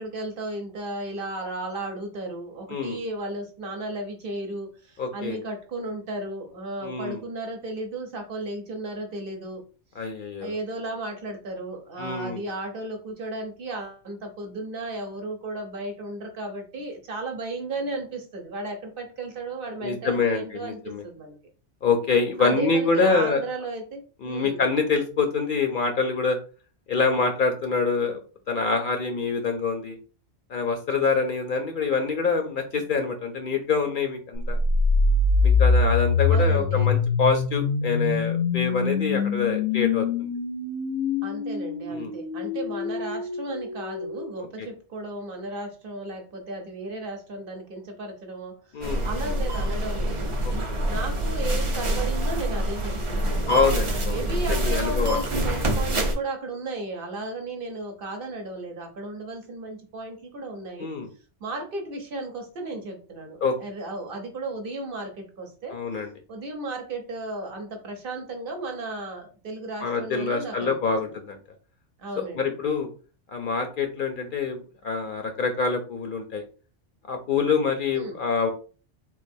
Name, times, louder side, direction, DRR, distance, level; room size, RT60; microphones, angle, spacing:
voice 1, 0.0-9.6 10.4-21.4 22.4-24.6 36.3-36.9 41.2-50.4 50.9-53.6 54.1-60.9 61.4-65.8 66.3-71.2 72.0-72.6 77.9-78.2, right 2 dB, 55° right, 3 dB, 0.9 m, -34 dB
voice 2, 5.0-5.4 6.8-7.2 10.0-10.5 12.0-12.4 19.8-21.0 21.8-23.4 24.2-26.4 26.9-28.2 28.5-30.0 30.5-34.6 35.4-40.3 41.9-42.1 44.6-44.7 48.7-49.0 50.4-50.8 53.5-54.2 54.5-55.2 60.8-61.1 63.4-63.5 65.7-66.1 69.8-71.4 72.4-72.9 73.3-74.6 74.8-76.4 77.1-78.5, left 4 dB, 60° left, 5 dB, 0.6 m, -25 dB
sound 1, 34.4-44.4, left 4 dB, 80° left, 0.9 m, -24 dB
sound 2, 48.8-56.1, right 1 dB, 40° right, 0.5 m, -26 dB
3.8 x 2.4 x 2.6 m, 0.37 s
omnidirectional pair, 1.2 m